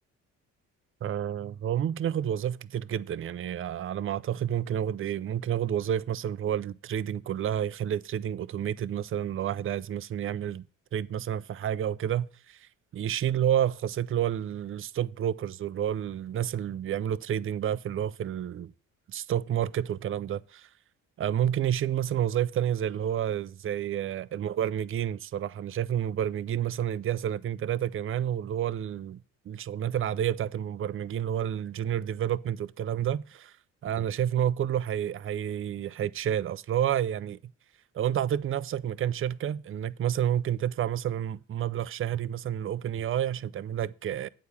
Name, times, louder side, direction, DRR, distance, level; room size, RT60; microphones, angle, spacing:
voice 1, 1.0-10.6 10.9-18.7 19.1-20.7 21.2-33.5 33.8-37.4 37.9-44.3, right 10 dB, 35° right, 0.5 m, -30 dB
8.2 x 4.7 x 7.1 m
supercardioid pair, 65°, 36 cm